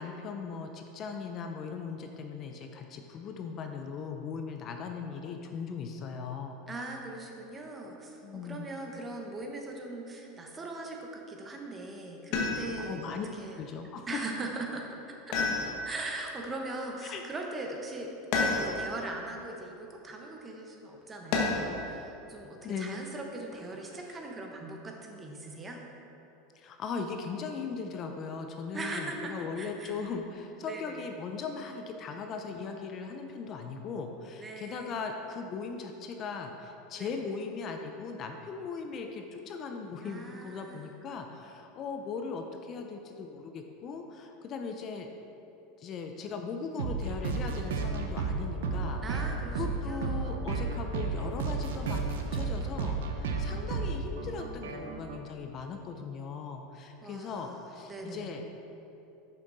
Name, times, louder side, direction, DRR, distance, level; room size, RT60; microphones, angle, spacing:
voice 1, 0.0-6.6 8.2-8.7 12.8-13.3 13.5-14.1 17.0-17.2 22.6-23.0 26.5-45.1 45.8-49.0 49.5-58.4, left 5 dB, 40° left, 4 dB, 0.5 m, -39 dB
voice 2, 6.7-13.6 14.1-15.4 15.8-25.8 28.7-30.1 30.7-31.0 34.4-35.0 37.0-37.2 40.0-40.9 49.0-50.4 57.0-58.3, right 2 dB, 20° right, 1 dB, 1.0 m, -40 dB
sound 1, 12.3-13.0 15.3-16.1 18.3-19.0 21.3-21.8 23.5-24.2, left 3 dB, 60° left, 1.2 m, -30 dB
sound 2, 46.8-55.2, right 4 dB, 85° right, 0.7 m, -33 dB
6.4 x 5.8 x 4.0 m, 2.9 s
supercardioid pair, 115°, 0 cm